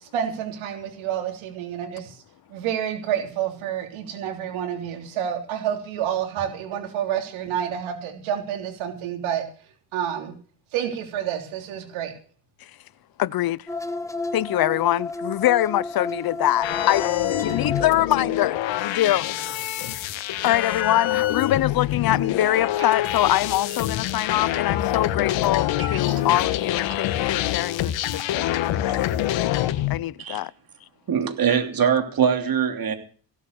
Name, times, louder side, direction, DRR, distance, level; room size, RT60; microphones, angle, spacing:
voice 1, 0.0-2.2 2.5-9.4 9.9-10.3 10.7-12.1, right 9 dB, 80° right, 3.4 m, -29 dB
voice 2, 13.2-13.6 14.3-17.1 17.4-19.3 20.4-30.5, left 14 dB, 50° left, 0.7 m, -24 dB
sound 1, 13.7-18.4 18.7-19.2 19.4-21.4 22.1-22.3 24.1-24.5 24.8-24.9 25.6-26.1 26.5-26.6, left 2 dB, 5° left, 1.4 m, -33 dB
sound 2, 16.6-30.0, left 13 dB, 70° left, 1.4 m, -25 dB
voice 3, 31.1-32.9, right 7 dB, 45° right, 3.0 m, -23 dB
16.5 x 8.2 x 6.8 m
supercardioid pair, 85°, 47 cm